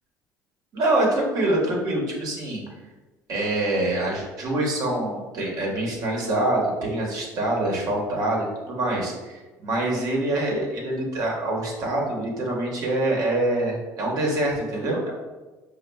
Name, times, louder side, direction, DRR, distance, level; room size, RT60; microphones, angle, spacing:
voice 1, 0.7-2.6 3.3-15.1, right 1 dB, 60° right, -2 dB, 1.2 m, -25 dB
5.1 x 2.4 x 2.3 m, 1.2 s
supercardioid pair, 95°, 7 cm